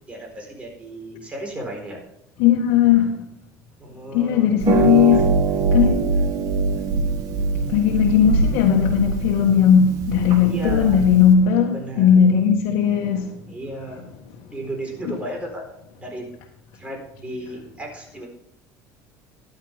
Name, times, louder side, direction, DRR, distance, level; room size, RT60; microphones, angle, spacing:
voice 1, 0.0-2.0 3.8-5.2 10.4-11.1 11.7-12.2 13.5-14.1 14.5-15.6 16.0-16.2 16.8-18.3, right 1 dB, 15° right, 4.4 m, -34 dB
voice 2, 2.4-3.2 4.1-6.0 7.7-13.4, left 8 dB, 75° left, 1.6 m, -17 dB
Harp, 4.6-11.3, right 3 dB, 55° right, 1.9 m, -23 dB
13.0 x 10.5 x 3.6 m
cardioid pair, 130°, 7 cm